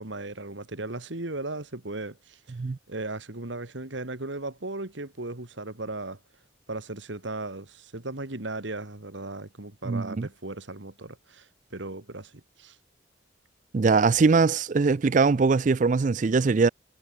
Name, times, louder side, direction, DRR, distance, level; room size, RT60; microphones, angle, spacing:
voice 1, 0.0-2.6 2.9-6.2 6.7-12.8, right 2 dB, 70° right, 2.2 m, -36 dB
voice 2, 9.9-10.3 13.7-16.7, right 4 dB, 40° right, 0.4 m, -21 dB
head